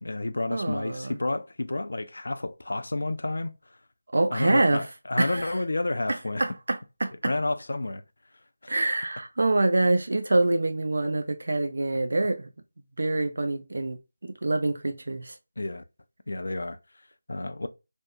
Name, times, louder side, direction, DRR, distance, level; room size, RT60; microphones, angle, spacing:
voice 1, 0.0-3.5 4.3-6.4 7.2-8.0 8.6-8.8 15.6-15.8 16.3-16.8 17.3-17.7, left 2 dB, 70° left, 0.4 m, -30 dB
voice 2, 0.5-1.2 4.1-4.8 5.2-5.5 6.1-7.3 8.7-12.5 13.0-14.0 14.4-15.4, right 2 dB, 65° right, 0.6 m, -25 dB
3.5 x 2.1 x 2.4 m
figure-of-eight pair, 165°, 0 cm